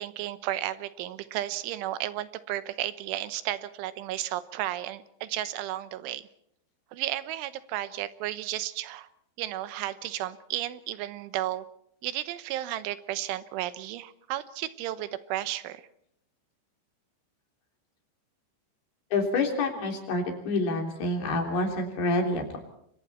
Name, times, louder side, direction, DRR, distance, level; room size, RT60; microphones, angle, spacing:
voice 1, 0.0-6.3 6.9-9.1 9.4-11.7 12.0-15.9, right 14 dB, 90° right, 13 dB, 3.4 m, -33 dB
voice 2, 19.1-22.6, left 2 dB, 60° left, 2 dB, 5.2 m, -27 dB
29.0 x 23.0 x 4.4 m, 0.72 s
omnidirectional pair, 5.4 m